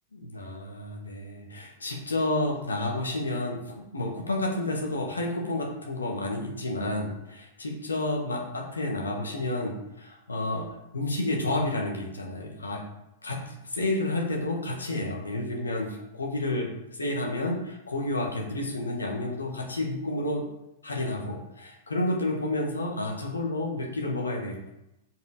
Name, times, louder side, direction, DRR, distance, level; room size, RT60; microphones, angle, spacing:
voice 1, 0.2-12.8 13.2-20.5 20.8-24.7, left 1 dB, 75° left, 1 dB, 1.7 m, -30 dB
6.4 x 5.1 x 5.1 m, 0.86 s
figure-of-eight pair, 95°, 0 cm